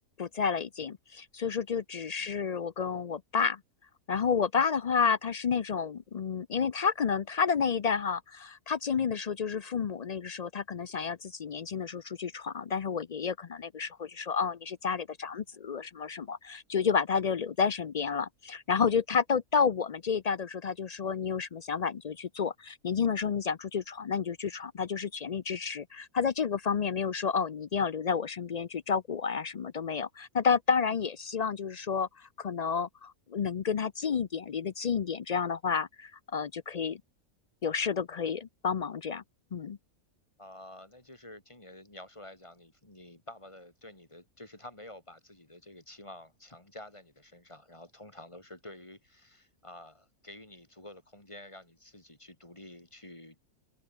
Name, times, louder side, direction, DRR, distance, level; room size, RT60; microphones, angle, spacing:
voice 1, 0.2-3.6 4.1-37.0 37.6-39.2 39.5-39.8, left 6 dB, 70° left, 0.3 m, -30 dB
voice 2, 40.4-53.4, left 1 dB, 20° left, 3.5 m, -50 dB
omnidirectional pair, 1.5 m